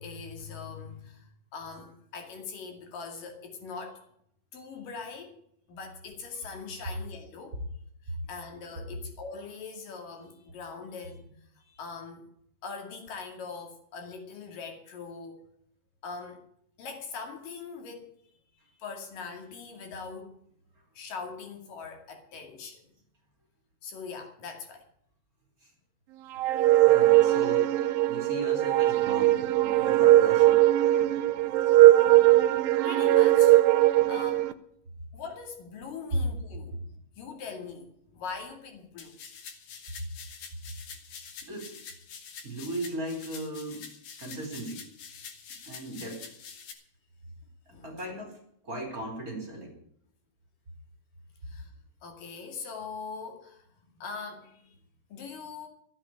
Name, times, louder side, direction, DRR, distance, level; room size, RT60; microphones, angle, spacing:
voice 1, 0.0-4.0 4.5-5.3 5.7-7.6 8.0-11.2 11.6-12.3 12.6-15.4 16.0-16.4 16.8-18.1 18.8-20.4 21.0-22.8 23.8-24.8 32.8-33.6 34.1-34.5 35.1-39.2 47.7-48.2 51.5-51.7 52.0-53.6 54.0-54.7 55.1-55.7, left 5 dB, 70° left, 4 dB, 3.9 m, -41 dB
sound 1, 26.4-34.5, right 15 dB, 90° right, 2.6 m, -20 dB
voice 2, 26.8-27.8 28.1-30.7 41.4-41.8 42.4-43.9 44.1-44.9 45.7-46.3 47.7-48.4 48.6-49.8, right 1 dB, 25° right, 1 dB, 4.4 m, -38 dB
sound 2, 39.0-46.7, left 6 dB, 90° left, 3.8 m, -46 dB
14.5 x 8.5 x 9.0 m, 0.69 s
omnidirectional pair, 4.0 m